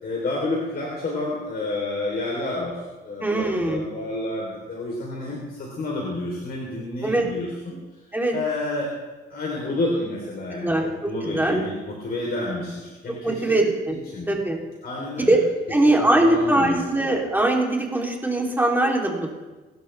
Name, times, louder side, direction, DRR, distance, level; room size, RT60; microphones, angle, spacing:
voice 1, 0.0-2.8 3.0-7.8 8.3-8.9 9.3-13.6 13.9-14.3 14.8-15.4 15.8-17.1, left 2 dB, 50° left, -3 dB, 3.5 m, -30 dB
voice 2, 3.2-3.8 7.0-7.3 8.1-8.3 10.6-10.8 11.2-11.6 13.2-14.0 14.3-14.6 15.2-15.4 15.7-19.4, right 1 dB, 10° right, -1 dB, 3.1 m, -21 dB
23.0 x 12.0 x 3.4 m, 1.2 s
cardioid pair, 90°, 20 cm